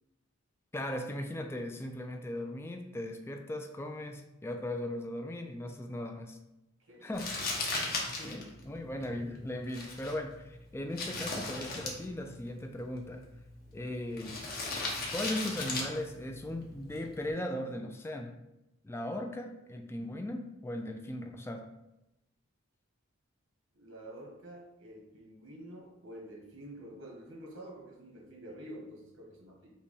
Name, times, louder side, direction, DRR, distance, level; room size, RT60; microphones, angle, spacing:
voice 1, 0.7-6.4 7.0-7.6 8.2-13.2 13.7-14.4 15.1-18.4 18.8-21.7, left 1 dB, 15° left, 4 dB, 0.4 m, -38 dB
voice 2, 6.8-7.1 7.7-8.7 13.6-13.9 23.7-29.7, right 1 dB, 85° right, -2 dB, 1.4 m, -49 dB
Crumpling crinkling, 7.1-17.3, left 3 dB, 50° left, 1.0 m, -39 dB
5.5 x 2.2 x 4.1 m, 0.90 s
head